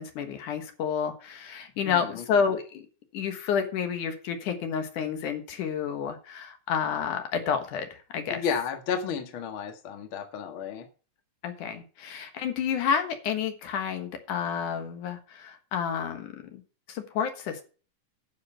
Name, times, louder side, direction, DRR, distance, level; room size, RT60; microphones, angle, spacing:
voice 1, 0.0-2.8 3.1-8.4 11.4-16.6 16.9-17.6, left 7 dB, 75° left, 7 dB, 2.9 m, -30 dB
voice 2, 1.9-2.2 8.3-10.9, left 7 dB, 45° left, 6 dB, 2.2 m, -32 dB
10.5 x 7.2 x 5.6 m, 0.36 s
omnidirectional pair, 3.6 m